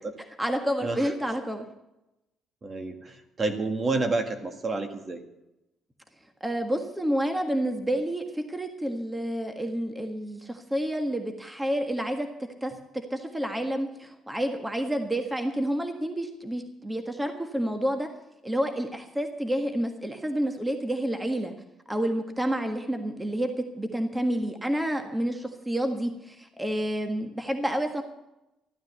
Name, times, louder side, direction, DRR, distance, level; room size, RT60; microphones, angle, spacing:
voice 1, 0.4-1.6 6.4-12.3 12.6-18.1 18.4-21.5 21.9-28.0, right 1 dB, 10° right, 5 dB, 1.7 m, -29 dB
voice 2, 2.6-5.2, right 3 dB, 35° right, 6 dB, 1.9 m, -29 dB
14.5 x 9.6 x 8.1 m, 0.92 s
cardioid pair, 85°, 0 cm